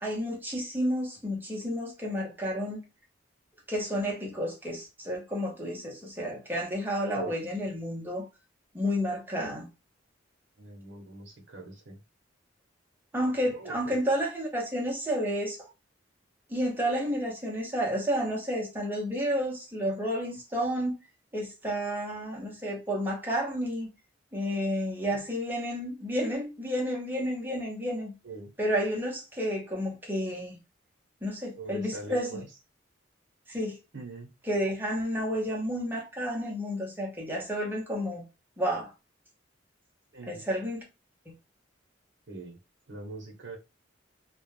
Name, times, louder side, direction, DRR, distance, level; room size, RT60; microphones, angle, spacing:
voice 1, 0.0-2.8 3.7-8.2 8.7-9.7 13.1-15.7 16.5-21.0 21.3-23.9 24.3-28.1 28.6-30.6 31.2-32.4 33.5-33.8 34.5-38.2 38.6-38.9 40.3-40.8 41.3-41.4, equal, 10° right, 0.7 m, -31 dB
voice 2, 10.6-12.0 13.5-13.9 25.1-25.2 28.2-28.5 31.6-32.5 33.9-34.3 40.1-40.4 42.3-42.6 42.9-43.6, right 3 dB, 65° right, 0.7 m, -43 dB
2.3 x 2.1 x 3.1 m
head